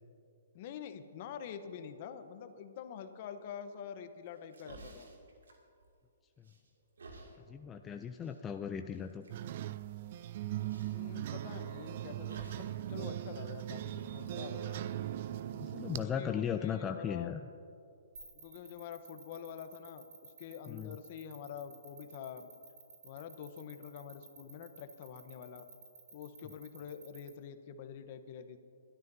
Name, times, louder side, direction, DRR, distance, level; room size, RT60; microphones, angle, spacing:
voice 1, 0.5-5.1 7.8-8.4 10.9-15.0 16.0-17.4 18.3-22.5 23.0-25.7 26.1-28.6, left 8 dB, 45° left, 9 dB, 1.0 m, -46 dB
sound 1, 4.3-6.1 6.4-7.4 8.2-8.4 8.9-9.3 10.6-11.0 12.2-12.9 13.2-13.3 13.9-15.4, right 3 dB, 90° right, 2.3 m, -54 dB
voice 2, 7.5-9.3 15.6-17.4 20.7-21.0, left 7 dB, 15° left, 6 dB, 0.4 m, -37 dB
sound 2, 9.3-16.1, right 12 dB, 50° right, 0.4 m, -39 dB
sound 3, 18.2-27.3, right 6 dB, 75° right, 4.0 m, -54 dB
25.5 x 12.5 x 2.7 m, 2.5 s
hypercardioid pair, 145°, 0 cm